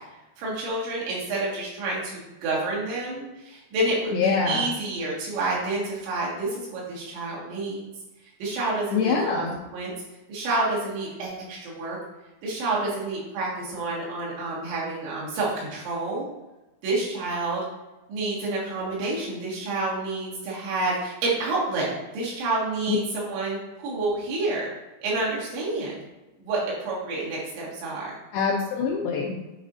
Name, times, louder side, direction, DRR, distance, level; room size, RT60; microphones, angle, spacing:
voice 1, 0.4-7.9 8.4-9.5 9.7-9.9 10.3-12.0 12.4-16.3 16.8-17.6 18.1-24.7 25.0-26.0 26.4-28.1, right 2 dB, 85° right, -6 dB, 4.1 m, -29 dB
voice 2, 4.1-4.6 8.9-9.5 22.9-23.0 28.3-29.4, left 5 dB, 90° left, -2 dB, 2.1 m, -24 dB
9.7 x 4.1 x 2.6 m, 1.0 s
omnidirectional pair, 5.2 m